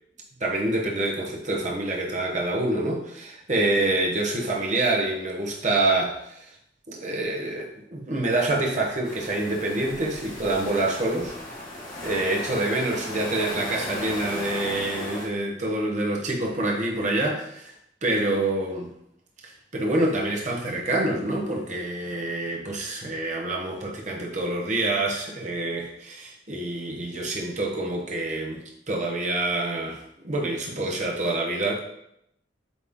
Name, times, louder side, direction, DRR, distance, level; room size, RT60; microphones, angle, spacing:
voice 1, 0.4-6.5 6.9-11.5 12.0-17.7 18.0-18.9 19.4-31.8, right 2 dB, 40° right, -1 dB, 1.1 m, -27 dB
sound 1, 9.0-15.3, left 1 dB, 50° left, 1.7 m, -36 dB
8.2 x 3.2 x 3.7 m, 0.76 s
head